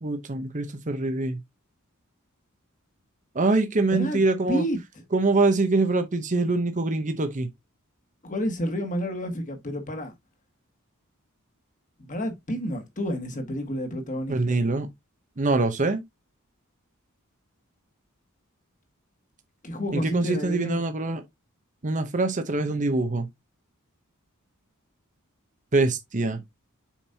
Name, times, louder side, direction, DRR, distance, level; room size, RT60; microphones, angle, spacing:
voice 1, 0.0-1.4 3.3-4.6 5.1-7.5 14.3-14.9 15.4-16.0 19.9-21.2 21.8-23.3 25.7-26.4, right 3 dB, 35° right, 0.8 m, -24 dB
voice 2, 3.9-4.2 4.5-4.8 8.2-10.1 12.0-14.6 19.6-20.8, equal, 35° left, 1.7 m, -29 dB
7.2 x 5.3 x 2.7 m
head